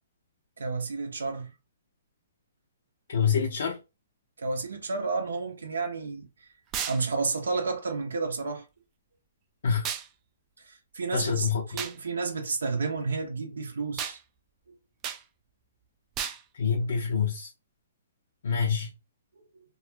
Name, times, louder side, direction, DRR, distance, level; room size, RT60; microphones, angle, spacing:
voice 1, 0.6-1.5 4.4-6.3 6.9-8.7 10.6-14.2, right 4 dB, 85° right, 0.6 m, -31 dB
voice 2, 3.1-3.8 9.6-9.8 11.1-11.6 16.5-17.5 18.4-18.9, left 6 dB, 70° left, 0.6 m, -26 dB
Various Belt Wipping, 6.7-7.0 9.8-10.1 11.8-12.0 14.0-14.2 15.0-15.2 16.2-16.4, right 8 dB, 25° right, 0.3 m, -33 dB
2.3 x 2.0 x 3.1 m
hypercardioid pair, 145°, 0 cm